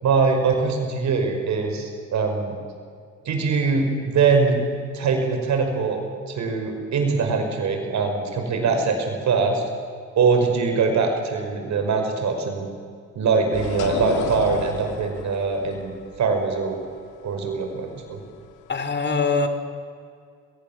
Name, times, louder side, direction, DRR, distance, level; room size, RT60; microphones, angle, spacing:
voice 1, 0.0-2.6 3.3-4.6 4.9-6.0 6.3-9.6 10.2-12.7 13.2-15.9 16.2-16.8 17.2-18.2, right 4 dB, 65° right, 4 dB, 5.4 m, -22 dB
sound 1, 13.5-18.8, left 9 dB, 90° left, 1.9 m, -34 dB
voice 2, 18.7-19.5, left 4 dB, 35° left, 8 dB, 3.4 m, -22 dB
23.0 x 22.0 x 7.4 m, 2.2 s
cardioid pair, 90°, 30 cm